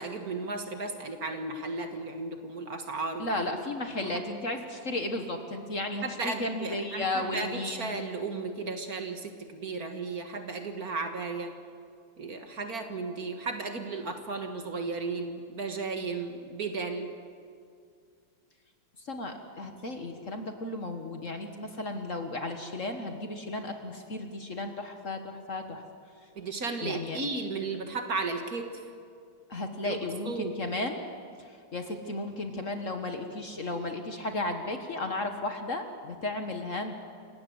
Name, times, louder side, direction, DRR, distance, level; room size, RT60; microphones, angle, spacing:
voice 1, 0.0-3.3 4.0-4.2 6.0-11.5 12.2-17.1 26.4-28.7 29.8-30.0 30.3-30.5, right 3 dB, 50° right, 5 dB, 2.0 m, -34 dB
voice 2, 3.2-7.9 19.0-25.8 26.8-27.2 29.5-31.0 31.4-37.0, left 2 dB, 40° left, 6 dB, 1.6 m, -34 dB
28.5 x 17.0 x 8.0 m, 2.3 s
omnidirectional pair, 2.2 m